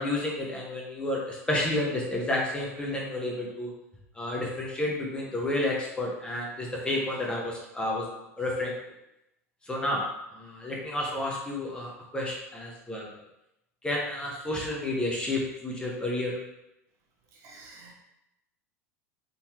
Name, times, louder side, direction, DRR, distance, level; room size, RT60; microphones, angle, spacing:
voice 1, 0.0-3.7 4.1-8.7 9.6-10.0 10.3-13.1 13.8-16.4, left 1 dB, 10° left, -3 dB, 1.0 m, -31 dB
voice 2, 17.4-17.9, right 3 dB, 45° right, -2 dB, 1.1 m, -49 dB
4.1 x 3.9 x 3.0 m, 0.87 s
figure-of-eight pair, 80°, 9 cm